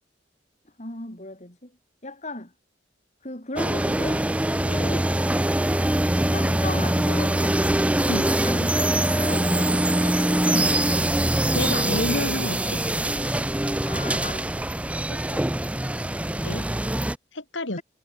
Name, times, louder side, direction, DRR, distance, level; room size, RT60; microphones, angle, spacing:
voice 1, 0.8-1.6 2.0-2.5 3.2-4.2 4.5-5.1 6.3-7.6 8.5-11.2 13.9-14.7 15.1-15.5, left 2 dB, 40° left, 4.4 m, -37 dB
sound 1, 3.6-17.2, right 1 dB, 5° right, 0.5 m, -23 dB
voice 2, 11.5-12.8 16.4-16.7 17.3-17.8, left 1 dB, 80° left, 4.2 m, -29 dB
head